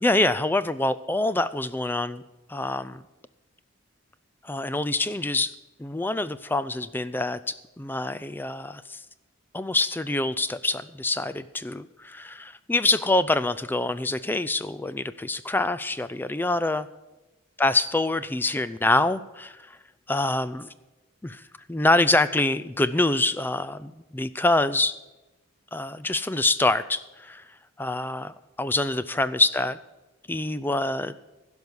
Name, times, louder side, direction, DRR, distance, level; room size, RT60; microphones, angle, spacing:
voice 1, 0.0-2.2 2.5-3.0 4.4-5.5 5.8-9.0 9.5-16.9 17.6-19.8 20.1-20.7 21.2-21.4 21.7-24.9 25.7-29.8 30.3-31.1, left 2 dB, 10° left, 14 dB, 0.3 m, -25 dB
16.0 x 5.4 x 8.0 m, 1.1 s
head